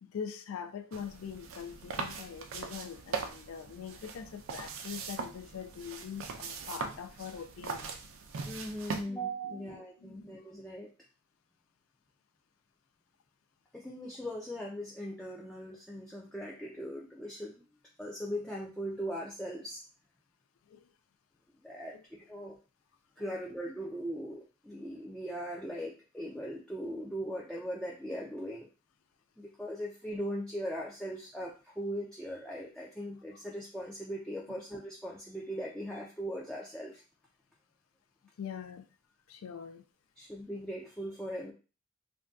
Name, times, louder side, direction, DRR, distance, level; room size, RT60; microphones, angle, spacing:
voice 1, 0.0-7.9 9.4-10.3 20.7-20.9 21.9-22.0 23.2-23.3 38.4-38.9 39.3-39.8, left 7 dB, 90° left, 0.4 m, -43 dB
sound 1, 0.9-9.0, right 5 dB, 80° right, 0.4 m, -41 dB
voice 2, 8.5-10.9 13.7-17.6 18.0-19.8 21.6-22.0 22.3-22.6 23.2-28.7 29.4-37.0 40.2-41.5, equal, 5° left, 0.3 m, -39 dB
2.5 x 2.2 x 3.4 m
head